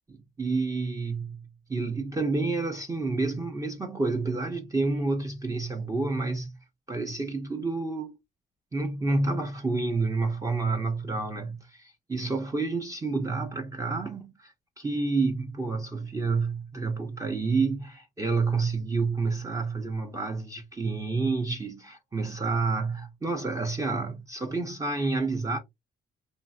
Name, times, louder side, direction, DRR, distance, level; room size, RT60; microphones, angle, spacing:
voice 1, 0.1-6.5 6.9-8.2 8.7-11.7 12.1-25.6, right 3 dB, 15° right, 0.5 m, -29 dB
3.1 x 2.4 x 2.5 m
cardioid pair, 90°, 20 cm